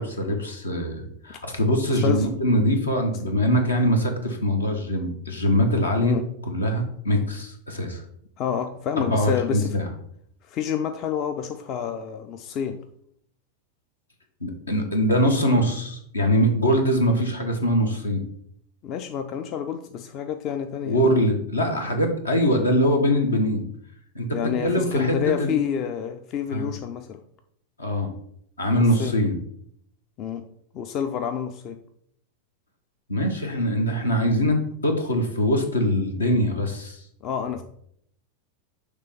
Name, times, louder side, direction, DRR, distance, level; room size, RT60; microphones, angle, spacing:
voice 1, 0.0-6.2 6.5-8.0 9.0-9.9 14.4-18.2 20.8-23.6 24.1-25.6 26.5-26.7 27.8-28.1 28.6-29.3 33.1-37.0, equal, 75° left, 4 dB, 1.2 m, -23 dB
voice 2, 1.9-2.3 6.0-6.3 8.4-9.8 10.4-12.8 18.8-21.0 24.3-27.2 28.7-29.1 30.2-30.5 30.7-31.8 37.2-37.6, left 8 dB, 35° left, 7 dB, 0.4 m, -28 dB
6.7 x 3.2 x 5.1 m, 0.69 s
figure-of-eight pair, 90°, 0 cm